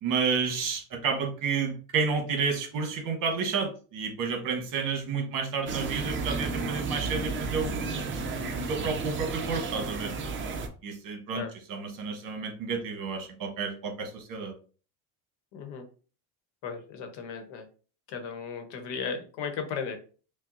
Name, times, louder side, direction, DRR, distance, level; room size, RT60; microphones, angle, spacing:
voice 1, 0.0-7.7 8.7-10.1 10.8-11.4 11.7-14.5, right 5 dB, 50° right, 3 dB, 1.3 m, -30 dB
sound 1, 5.7-10.7, right 4 dB, 30° right, 0.6 m, -32 dB
voice 2, 15.5-15.8 16.6-17.7 18.1-20.0, left 6 dB, 65° left, 6 dB, 1.1 m, -35 dB
5.4 x 2.3 x 2.6 m, 0.38 s
supercardioid pair, 125°, 43 cm